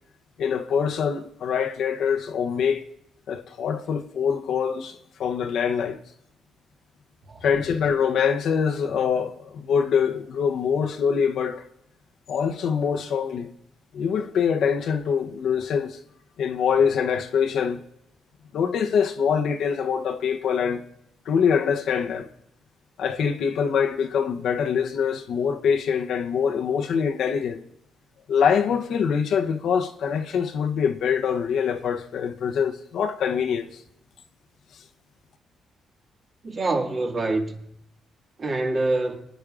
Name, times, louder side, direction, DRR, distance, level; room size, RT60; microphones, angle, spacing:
voice 1, 0.4-2.8 3.3-6.0 7.4-11.6 12.3-13.5 13.9-16.0 16.4-17.8 18.5-20.8 21.3-22.3 23.0-27.6 28.3-33.7, left 7 dB, 70° left, 0.8 m, -24 dB
voice 2, 36.4-37.7 38.4-39.3, right 2 dB, 40° right, 1.9 m, -26 dB
23.5 x 10.5 x 2.5 m
cardioid pair, 90°, 0 cm